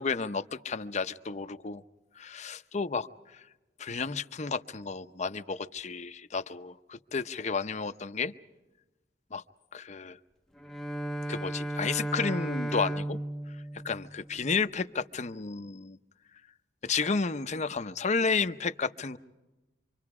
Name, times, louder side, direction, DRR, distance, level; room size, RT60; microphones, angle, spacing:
voice 1, 0.0-1.8 2.2-3.4 3.8-8.3 9.3-9.4 9.7-10.2 11.3-13.2 13.8-16.0 16.8-19.2, left 4 dB, 40° left, 10 dB, 0.7 m, -32 dB
Bowed string instrument, 10.6-14.7, right 1 dB, ahead, 0.7 m, -35 dB
27.0 x 25.0 x 4.9 m, 1.1 s
head